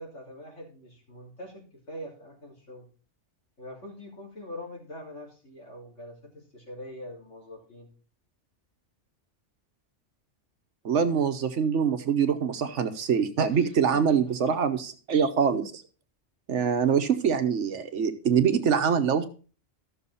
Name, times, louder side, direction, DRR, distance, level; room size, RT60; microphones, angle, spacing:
voice 1, 0.0-2.9 3.6-7.9 13.5-14.2, left 1 dB, 85° left, -2 dB, 3.7 m, -43 dB
voice 2, 10.8-15.8 16.5-19.2, right 7 dB, 75° right, 8 dB, 1.3 m, -24 dB
13.5 x 6.5 x 4.1 m, 0.38 s
omnidirectional pair, 1.2 m